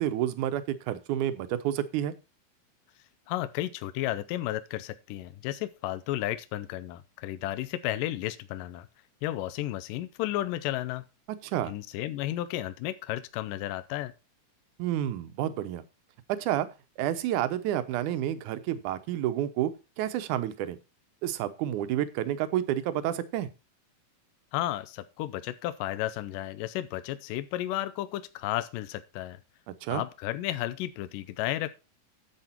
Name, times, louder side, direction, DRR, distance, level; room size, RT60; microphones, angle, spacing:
voice 1, 0.0-2.1 11.4-11.7 14.8-15.8 16.3-16.7 17.0-19.7 20.0-20.8 21.2-23.5 29.7-30.0, right 12 dB, 70° right, 11 dB, 2.1 m, -29 dB
voice 2, 3.3-8.9 9.2-11.0 11.7-14.1 24.5-29.4 29.9-31.7, left 14 dB, 80° left, 12 dB, 2.2 m, -33 dB
10.0 x 7.6 x 4.4 m, 0.29 s
omnidirectional pair, 4.1 m